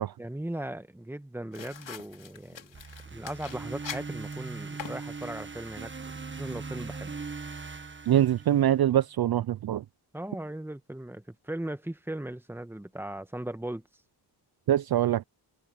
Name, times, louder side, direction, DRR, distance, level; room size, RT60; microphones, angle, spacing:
voice 1, 0.2-2.8 3.1-5.9 6.4-7.1 10.1-13.8, right 1 dB, 5° right, 1.3 m, -38 dB
sound 1, 1.5-5.6, left 8 dB, 85° left, 3.1 m, -45 dB
sound 2, 2.7-8.9, right 4 dB, 25° right, 1.5 m, -40 dB
voice 2, 8.1-9.8 14.7-15.2, right 11 dB, 60° right, 0.5 m, -24 dB
wide cardioid pair, 100°, 44 cm